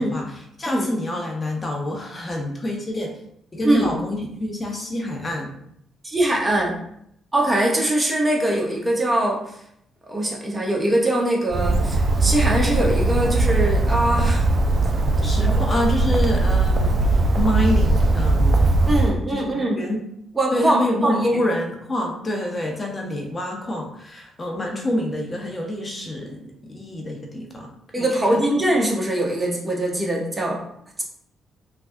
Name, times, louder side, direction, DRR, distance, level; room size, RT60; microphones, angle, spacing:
voice 1, 0.0-3.2 3.5-5.5 15.2-18.7 19.3-20.0 20.5-27.7 28.0-28.4, left 1 dB, 35° left, 1 dB, 0.7 m, -27 dB
voice 2, 6.0-6.8 7.3-9.4 10.1-14.5 15.2-15.5 18.9-19.8 20.3-21.3 27.9-30.6, right 1 dB, 25° right, -1 dB, 1.0 m, -22 dB
Bird, 11.5-19.1, right 2 dB, 50° right, 0.4 m, -19 dB
3.3 x 2.2 x 2.6 m, 0.71 s
hypercardioid pair, 45°, 0 cm